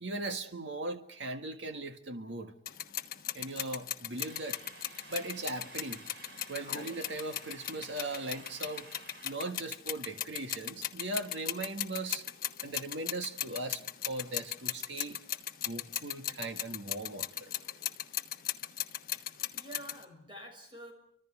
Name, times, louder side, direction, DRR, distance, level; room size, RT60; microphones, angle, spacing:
voice 1, 0.0-2.5 3.3-4.6 5.1-6.0 6.5-8.9 9.2-12.3 12.6-15.2 15.7-17.5, right 2 dB, 85° right, 6 dB, 1.7 m, -39 dB
sound 1, 2.7-20.0, left 11 dB, 50° left, 1.2 m, -38 dB
sound 2, 4.2-9.3, right 3 dB, 70° right, 3.7 m, -52 dB
voice 2, 19.1-20.9, right 1 dB, 25° right, 4 dB, 6.6 m, -49 dB
30.0 x 25.5 x 4.9 m, 0.64 s
head